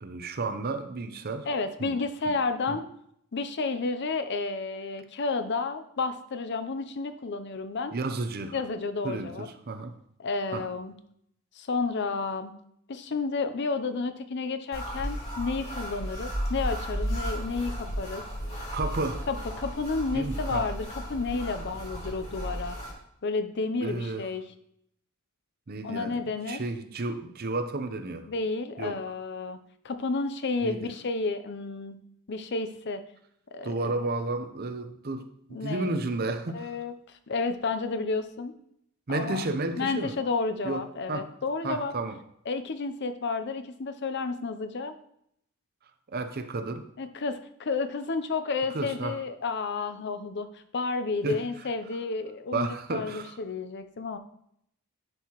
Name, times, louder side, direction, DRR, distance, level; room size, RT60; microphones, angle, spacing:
voice 1, 0.0-1.5 1.8-1.9 2.7-2.8 7.9-8.6 9.0-9.9 10.5-10.7 18.7-19.3 20.1-20.7 23.8-24.3 25.7-26.2 26.5-28.3 28.8-29.0 30.6-30.9 33.6-36.8 39.1-40.1 40.6-40.8 41.1-41.3 41.6-42.2 46.1-46.9 48.7-49.2 51.2-51.4 52.5-53.4, right 2 dB, 45° right, 8 dB, 0.6 m, -32 dB
voice 2, 1.4-2.8 3.3-7.9 8.5-9.5 10.2-10.9 11.6-12.5 12.9-18.2 19.3-22.8 23.2-24.4 25.8-26.6 28.3-29.6 29.8-32.0 32.3-33.0 33.5-33.9 35.5-35.9 36.5-36.9 37.3-38.5 39.1-39.4 39.8-41.9 42.5-44.9 47.0-54.2, left 4 dB, 50° left, 10 dB, 0.6 m, -31 dB
sound 1, 14.7-22.9, equal, 30° left, 2.6 m, -34 dB
10.5 x 4.6 x 3.0 m, 0.72 s
head